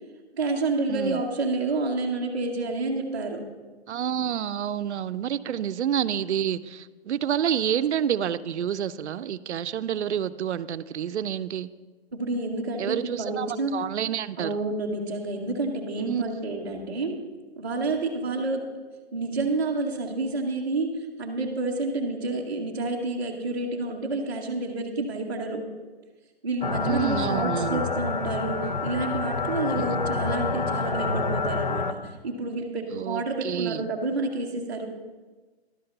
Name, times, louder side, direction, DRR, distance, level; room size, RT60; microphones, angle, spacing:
voice 1, 0.3-3.4 12.1-13.7 14.4-17.2 17.6-18.6 19.1-20.9 21.2-25.6 26.4-34.9, right 2 dB, 20° right, -7 dB, 0.7 m, -29 dB
voice 2, 0.9-1.2 3.9-11.7 12.8-14.6 16.0-16.2 26.8-27.8 29.7-29.8 32.9-33.9, right 9 dB, 85° right, 14 dB, 0.6 m, -28 dB
sound 1, 26.6-31.9, left 4 dB, 45° left, 0.6 m, -28 dB
11.5 x 5.9 x 6.6 m, 1.3 s
hypercardioid pair, 180°, 33 cm